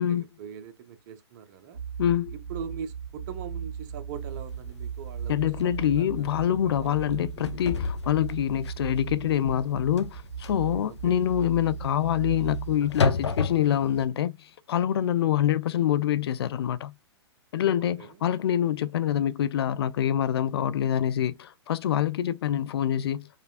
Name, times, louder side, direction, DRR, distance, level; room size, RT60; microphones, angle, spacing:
voice 1, 0.0-1.8 2.3-7.5 10.8-11.3 17.8-18.2, right 7 dB, 45° right, 0.9 m, -42 dB
sound 1, 1.7-13.0, right 7 dB, 70° right, 1.8 m, -37 dB
voice 2, 2.0-2.3 5.3-16.9 17.5-23.3, left 10 dB, 60° left, 0.4 m, -26 dB
sound 2, 4.5-4.6 5.0-5.1 5.5-5.8 6.2-6.5 6.8-14.0, left 4 dB, 85° left, 0.8 m, -32 dB
4.9 x 3.1 x 2.3 m
hypercardioid pair, 120°, 14 cm